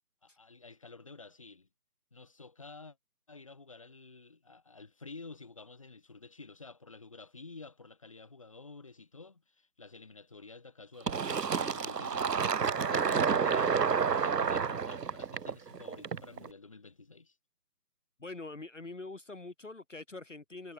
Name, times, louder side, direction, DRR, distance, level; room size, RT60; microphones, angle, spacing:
voice 1, 0.2-1.7 2.1-3.0 3.3-13.8 14.1-17.4, left 3 dB, 20° left, 4.4 m, -50 dB
Fill (with liquid), 11.1-16.5, right 6 dB, 80° right, 0.9 m, -30 dB
voice 2, 18.2-20.7, left 3 dB, 50° left, 2.5 m, -44 dB
figure-of-eight pair, 180°, 48 cm